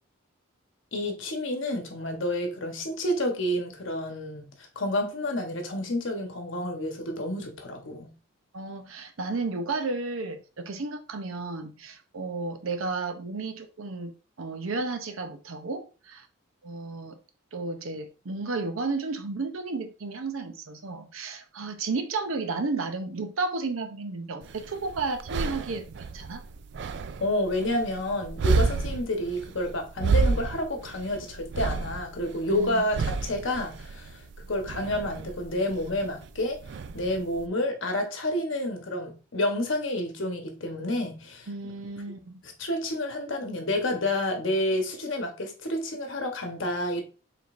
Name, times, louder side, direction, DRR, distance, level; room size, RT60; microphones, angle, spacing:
voice 1, 0.9-4.5 4.8-8.1 27.2-36.6 36.9-41.5 42.4-47.0, left 1 dB, 70° left, 1.0 m, -29 dB
voice 2, 8.5-14.1 14.4-16.3 16.6-17.2 17.5-26.4 32.5-32.8 41.5-42.4, right 3 dB, 85° right, 0.7 m, -33 dB
sound 1, 24.4-37.5, right 4 dB, 55° right, 0.3 m, -31 dB
5.1 x 3.5 x 2.5 m
head